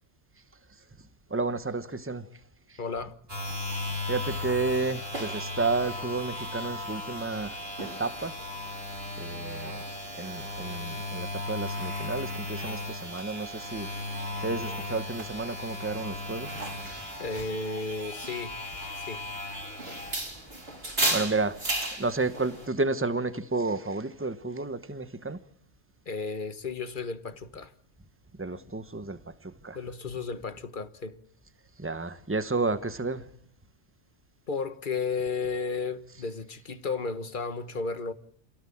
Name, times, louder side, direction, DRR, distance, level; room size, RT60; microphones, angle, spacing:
voice 1, 1.3-2.3 2.7-2.8 4.1-8.4 9.2-9.8 10.1-16.8 21.1-25.4 28.4-29.8 31.8-33.3, right 3 dB, 10° right, 1.1 m, -31 dB
voice 2, 2.8-3.1 17.2-18.5 18.9-19.2 26.0-27.7 29.7-31.2 34.5-38.1, left 4 dB, 45° left, 1.5 m, -33 dB
sound 1, 3.3-22.7, left 1 dB, 55° right, 4.9 m, -35 dB
27.5 x 17.0 x 8.7 m
omnidirectional pair, 1.2 m